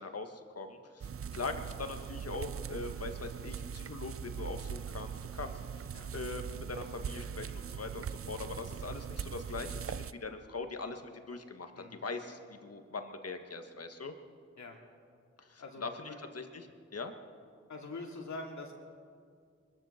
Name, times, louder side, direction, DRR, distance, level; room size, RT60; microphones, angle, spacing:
voice 1, 0.0-5.8 6.1-14.1 15.4-16.7 16.9-17.1, left 3 dB, 55° left, 6 dB, 1.7 m, -42 dB
sound 1, 1.0-10.1, right 7 dB, 50° right, 0.5 m, -41 dB
voice 2, 15.6-16.2 17.7-18.7, left 2 dB, 75° left, 1 dB, 2.6 m, -44 dB
23.0 x 13.5 x 4.4 m, 2.2 s
cardioid pair, 50°, 29 cm